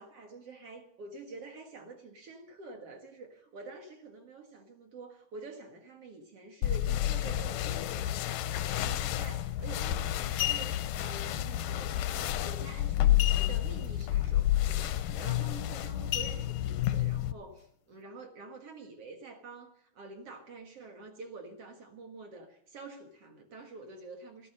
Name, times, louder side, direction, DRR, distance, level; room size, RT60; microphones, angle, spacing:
voice 1, 0.0-24.5, right 3 dB, 55° right, 2.4 m, -48 dB
sound 1, 6.6-17.3, left 13 dB, 90° left, 2.4 m, -30 dB
sound 2, 9.5-9.7 10.2-11.0 13.2-13.9 14.2-14.3 14.8-15.0 16.1-16.9 17.5-17.6, left 16 dB, 70° left, 2.2 m, -34 dB
14.5 x 13.0 x 6.5 m
omnidirectional pair, 3.6 m